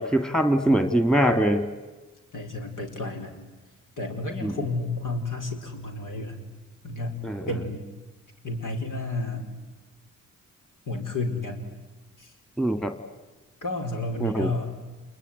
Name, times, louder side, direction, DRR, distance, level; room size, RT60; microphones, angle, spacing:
voice 1, 0.0-1.6 4.4-4.5 7.2-7.5 12.6-12.9 14.2-14.5, right 1 dB, ahead, 8 dB, 2.4 m, -22 dB
voice 2, 2.3-3.4 4.0-6.4 6.8-7.9 8.4-9.5 10.9-11.7 12.2-12.3 13.6-14.8, left 2 dB, 65° left, 3 dB, 4.7 m, -31 dB
28.5 x 21.0 x 9.7 m, 1.2 s
supercardioid pair, 40°, 34 cm